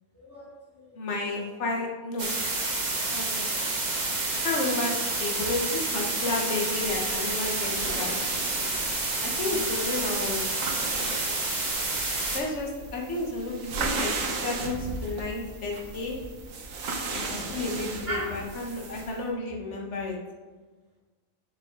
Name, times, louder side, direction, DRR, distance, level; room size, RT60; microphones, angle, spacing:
voice 1, 0.1-1.0 9.5-9.6 17.1-17.6 18.1-18.3, right 1 dB, 10° left, -8 dB, 2.6 m, -37 dB
voice 2, 0.9-2.3 3.1-3.4 4.4-8.2 9.2-10.7 12.3-14.1 14.4-16.2 17.3-20.2, left 2 dB, 60° left, -1 dB, 1.5 m, -32 dB
sound 1, 2.2-12.4, right 2 dB, 35° right, 1.2 m, -29 dB
sound 2, 6.6-19.2, right 3 dB, 75° right, 1.3 m, -36 dB
7.1 x 6.6 x 3.7 m, 1.3 s
omnidirectional pair, 1.4 m